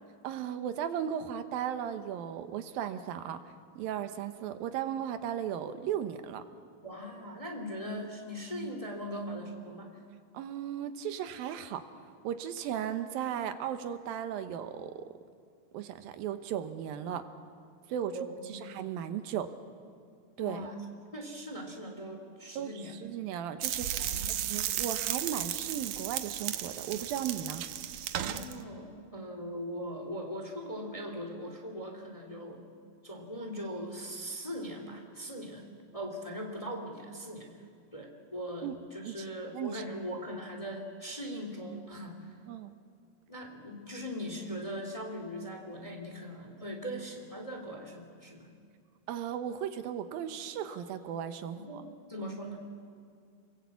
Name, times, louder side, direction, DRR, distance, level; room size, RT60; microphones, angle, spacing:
voice 1, 0.2-3.4 3.8-6.4 10.3-15.1 15.7-17.2 17.9-18.2 18.5-19.5 20.4-20.7 22.6-27.6 38.6-38.7 39.1-39.3 39.5-39.8 42.5-42.8 49.1-51.8, right 9 dB, 85° right, 9 dB, 2.9 m, -36 dB
voice 2, 6.8-10.0 18.1-18.7 20.4-20.8 21.1-22.9 24.0-24.6 28.2-32.7 33.0-35.7 35.9-37.6 37.9-42.3 43.3-48.5 51.5-52.6, equal, 10° left, 3 dB, 2.0 m, -40 dB
sound 1, 23.6-28.5, right 11 dB, 70° right, 2.0 m, -34 dB
28.5 x 21.5 x 8.4 m, 2.2 s
omnidirectional pair, 4.1 m